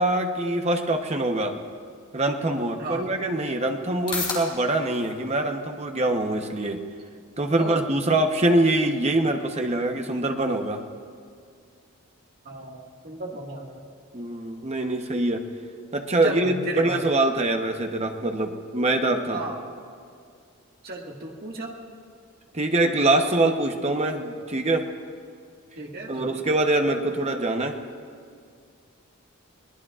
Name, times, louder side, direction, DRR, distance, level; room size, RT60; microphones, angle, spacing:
voice 1, 0.0-1.6 2.1-6.8 7.4-10.8 14.1-15.4 15.9-19.4 22.5-24.9 26.1-27.8, right 2 dB, 30° right, 4 dB, 1.0 m, -24 dB
sound 1, 2.6-19.6, left 3 dB, 25° left, 3.1 m, -44 dB
voice 2, 2.8-3.1 7.5-7.9 12.5-13.7 16.2-17.1 19.3-19.7 20.8-21.8 25.8-26.4, right 2 dB, 45° right, -1 dB, 1.9 m, -34 dB
22.5 x 19.0 x 2.5 m, 2.3 s
head